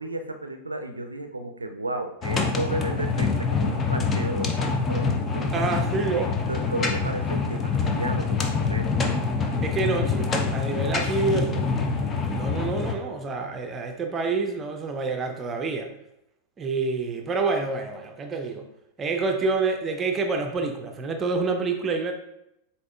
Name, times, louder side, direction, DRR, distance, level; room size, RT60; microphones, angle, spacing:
voice 1, 0.0-5.5 6.5-8.9, right 2 dB, 80° right, 6 dB, 0.4 m, -33 dB
sound 1, 2.2-12.9, left 4 dB, 25° left, 0.5 m, -25 dB
voice 2, 5.5-6.3 9.6-15.9 16.6-18.7 19.0-22.1, right 3 dB, 20° right, 4 dB, 0.5 m, -28 dB
7.6 x 2.8 x 2.4 m, 0.84 s
figure-of-eight pair, 90°, 0 cm